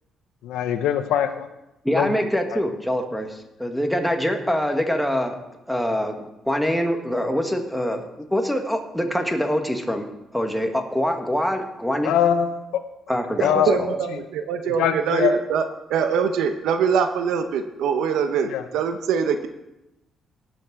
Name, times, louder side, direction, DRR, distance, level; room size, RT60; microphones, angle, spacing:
voice 1, 0.4-1.5 1.9-2.1 2.5-2.6 12.0-12.8 13.4-13.8 14.8-15.3 18.5-18.6, left 9 dB, 90° left, 8 dB, 0.6 m, -22 dB
voice 2, 1.8-5.4 5.7-10.1 10.3-12.1 13.1-13.9, equal, ahead, 4 dB, 1.5 m, -24 dB
voice 3, 13.7-15.6 15.9-19.5, right 6 dB, 85° right, 7 dB, 0.8 m, -23 dB
18.0 x 6.1 x 4.6 m, 0.94 s
cardioid pair, 90°, 0 cm